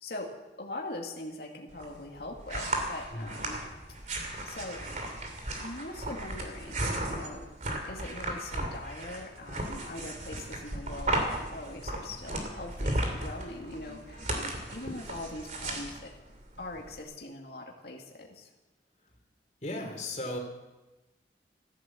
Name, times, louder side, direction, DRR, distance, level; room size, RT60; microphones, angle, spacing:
voice 1, 0.0-0.3 0.6-3.6 4.0-4.1 4.4-4.8 5.6-6.8 7.0-7.5 7.9-14.3 14.7-16.1 16.6-18.5, left 2 dB, 65° left, 0 dB, 2.1 m, -42 dB
sound 1, 1.7-17.0, right 1 dB, 45° right, 2.7 m, -35 dB
voice 2, 19.6-20.4, left 1 dB, 40° left, 1 dB, 3.2 m, -35 dB
14.5 x 11.0 x 7.4 m, 1.1 s
head